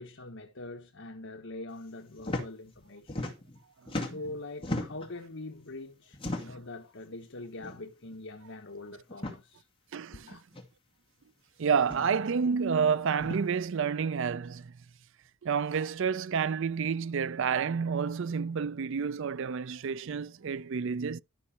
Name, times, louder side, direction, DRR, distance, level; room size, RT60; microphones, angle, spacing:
voice 1, 0.0-3.3 4.0-9.6 10.2-10.4, left 2 dB, 65° left, 1.3 m, -43 dB
sound 1, 2.2-2.5 2.8-3.6 3.9-5.1 6.1-6.7 7.6-7.8 8.1-8.2 9.1-9.4 10.5-10.6 11.8-12.1 13.2-13.4, left 1 dB, 25° left, 2.2 m, -36 dB
voice 2, 9.9-10.4 11.6-14.7 15.4-21.2, right 6 dB, 65° right, 0.4 m, -29 dB
12.5 x 6.1 x 4.4 m
head